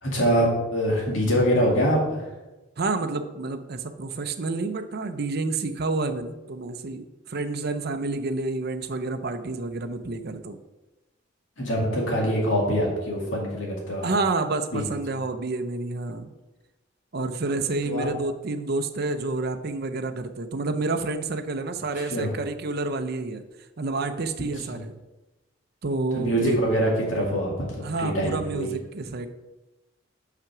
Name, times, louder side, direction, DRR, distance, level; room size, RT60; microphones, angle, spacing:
voice 1, 0.0-2.3 11.6-14.1 14.7-14.8 17.8-18.1 22.0-22.3 24.4-24.8 26.1-28.7, equal, 80° left, -2 dB, 2.2 m, -24 dB
voice 2, 2.8-10.6 14.0-16.3 17.1-23.4 23.8-24.9 25.8-26.6 27.8-29.3, right 3 dB, 55° right, 8 dB, 0.6 m, -29 dB
5.9 x 5.8 x 6.0 m, 1.1 s
head